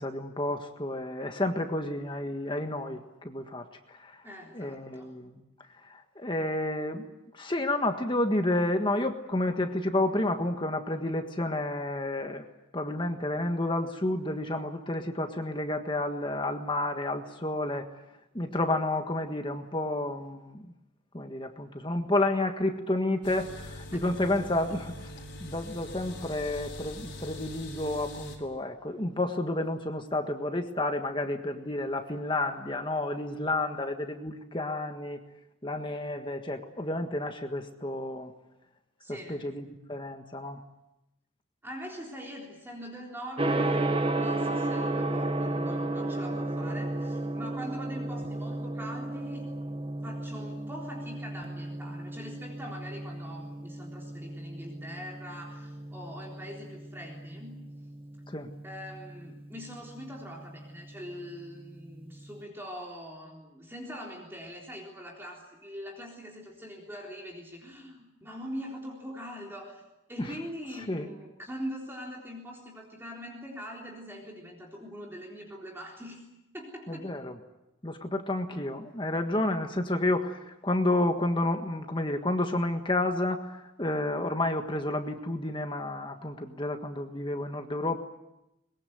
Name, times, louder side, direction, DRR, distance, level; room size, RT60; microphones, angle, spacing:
voice 1, 0.0-4.2 4.5-5.4 5.8-7.0 7.3-12.4 12.7-17.9 18.3-20.7 21.1-24.9 25.4-35.2 35.6-38.3 39.3-40.6 58.3-58.5 70.2-70.3 70.9-71.1 76.9-77.3 77.8-88.0, left 1 dB, 25° left, 5 dB, 1.6 m, -30 dB
voice 2, 4.2-5.2 39.0-39.5 41.6-43.9 44.1-49.5 50.0-57.7 58.6-69.8 70.1-76.2 76.5-77.1, equal, 10° right, -1 dB, 3.8 m, -43 dB
sound 1, 23.2-28.4, left 1 dB, 60° left, 6.4 m, -43 dB
Gong, 43.4-62.3, right 2 dB, 25° right, 1.3 m, -34 dB
23.0 x 22.0 x 9.3 m, 0.92 s
head